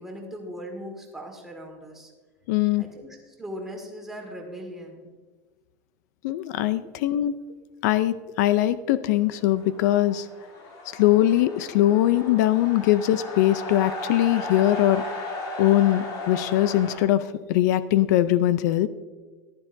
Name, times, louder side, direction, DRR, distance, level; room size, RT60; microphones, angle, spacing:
voice 1, 0.0-2.1 2.8-5.1 6.9-7.1, equal, 5° right, 0 dB, 1.8 m, -39 dB
voice 2, 2.5-2.8 6.2-7.3 7.8-10.3 10.9-15.0 15.6-18.9, left 13 dB, 70° left, 14 dB, 0.5 m, -21 dB
sound 1, 9.3-17.0, left 1 dB, 50° left, 2.9 m, -36 dB
14.5 x 11.5 x 2.6 m, 1.3 s
supercardioid pair, 155°, 10 cm